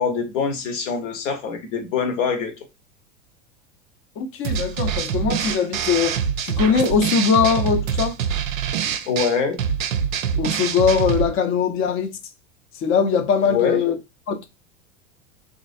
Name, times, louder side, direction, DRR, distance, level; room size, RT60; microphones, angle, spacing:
voice 1, 0.0-2.5 9.1-9.6 13.5-13.9, left 6 dB, 60° left, 1.0 m, -24 dB
voice 2, 4.2-6.2 6.4-8.2 10.4-12.2 12.7-13.9 14.3-14.5, left 6 dB, 30° left, 0.6 m, -21 dB
sound 1, 4.4-11.3, right 7 dB, 75° right, 0.5 m, -25 dB
3.0 x 2.5 x 2.5 m
figure-of-eight pair, 85°, 40 cm